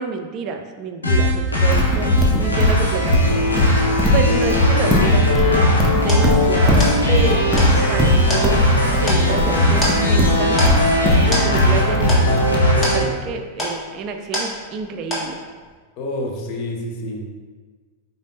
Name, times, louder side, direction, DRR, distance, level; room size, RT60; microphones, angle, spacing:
voice 1, 0.0-3.4 4.1-5.7 5.9-7.5 7.9-10.9 11.3-15.4, right 4 dB, 35° right, 5 dB, 0.4 m, -28 dB
sound 1, 1.0-13.0, left 1 dB, 80° left, 0.8 m, -17 dB
Livestock farm animals working animals, 1.7-12.5, left 1 dB, 5° right, 0.8 m, -21 dB
sound 2, 5.5-14.9 15.1-15.7, equal, 25° left, 1.5 m, -28 dB
voice 2, 16.0-17.3, left 1 dB, 45° left, 0 dB, 0.7 m, -28 dB
5.0 x 3.9 x 2.6 m, 1.5 s
figure-of-eight pair, 90°, 0 cm